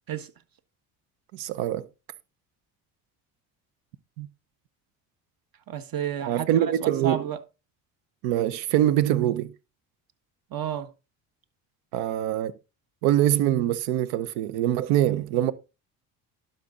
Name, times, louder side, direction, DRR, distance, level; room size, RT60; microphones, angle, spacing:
voice 1, 1.3-1.9 4.2-4.3 6.3-7.3 8.2-9.5 11.9-12.5 13.0-15.5, right 12 dB, 85° right, 0.9 m, -24 dB
voice 2, 5.7-7.4 10.5-10.9, right 9 dB, 50° right, 1.5 m, -31 dB
11.5 x 5.9 x 3.8 m
supercardioid pair, 75°, 44 cm